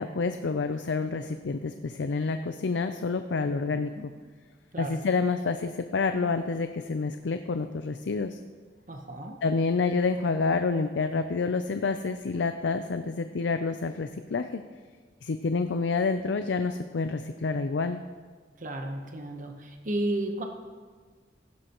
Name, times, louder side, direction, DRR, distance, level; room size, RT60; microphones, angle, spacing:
voice 1, 0.0-4.0 4.8-8.4 9.4-14.6 15.2-18.0, left 4 dB, 80° left, 9 dB, 0.5 m, -28 dB
voice 2, 3.4-4.1 4.7-5.0 8.9-9.4 18.6-20.4, right 1 dB, 45° right, 3 dB, 1.0 m, -34 dB
16.0 x 11.5 x 3.0 m, 1.5 s
head